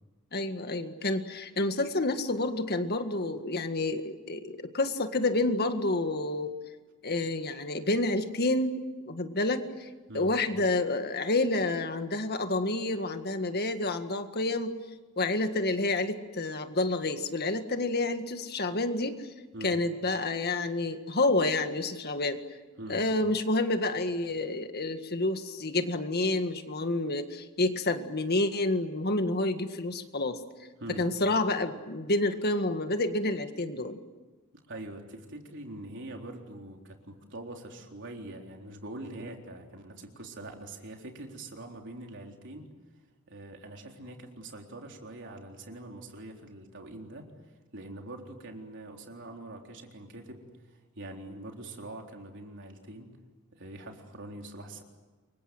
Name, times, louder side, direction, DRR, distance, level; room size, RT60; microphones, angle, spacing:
voice 1, 0.3-6.5 7.0-9.9 10.1-14.7 15.2-19.3 19.6-22.4 22.9-30.7 31.0-34.0, left 2 dB, 45° left, 8 dB, 1.8 m, -29 dB
voice 2, 34.7-42.7 43.3-47.3 47.7-53.1 53.5-54.8, right 1 dB, 55° right, 2 dB, 3.9 m, -44 dB
28.5 x 24.0 x 7.9 m, 1.3 s
head